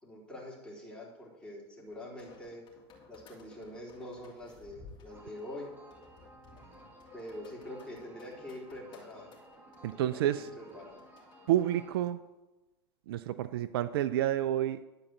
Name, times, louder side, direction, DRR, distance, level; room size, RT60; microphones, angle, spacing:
voice 1, 0.0-2.6 3.1-5.7 7.1-9.3 9.9-11.0, left 1 dB, 5° left, 3.9 m, -45 dB
sound 1, 1.9-12.0, left 4 dB, 35° left, 3.2 m, -57 dB
sound 2, 5.1-12.0, right 1 dB, 15° right, 1.9 m, -56 dB
voice 2, 9.8-10.5 11.5-12.3 13.1-14.8, right 12 dB, 60° right, 0.5 m, -29 dB
11.0 x 4.9 x 8.0 m
hypercardioid pair, 100°, 14 cm